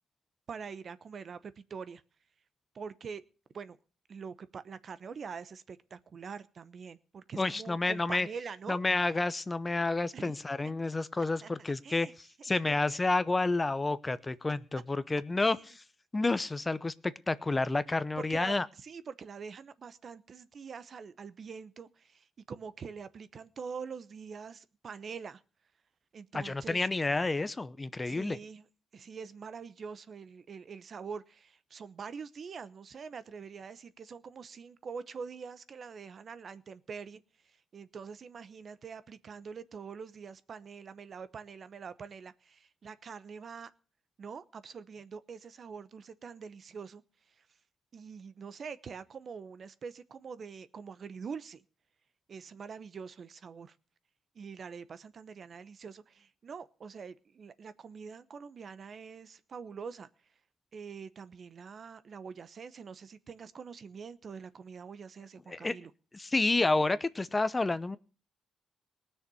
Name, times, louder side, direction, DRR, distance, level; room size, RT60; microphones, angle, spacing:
voice 1, 0.5-2.0 2.7-3.2 3.5-3.8 4.1-8.8 10.1-10.3 11.4-12.1 15.4-15.6 18.2-25.4 26.1-26.9 28.0-28.7 28.9-43.7 44.2-47.0 47.4-47.5 47.9-51.6 52.3-53.8 54.3-60.1 60.7-65.9, right 6 dB, 50° right, 14 dB, 0.9 m, -44 dB
voice 2, 7.4-8.3 8.7-15.8 16.1-18.7 26.3-28.4 65.5-65.8 66.1-68.0, left 3 dB, 20° left, 15 dB, 0.7 m, -30 dB
18.5 x 6.7 x 6.9 m, 0.36 s
cardioid pair, 90°, 0 cm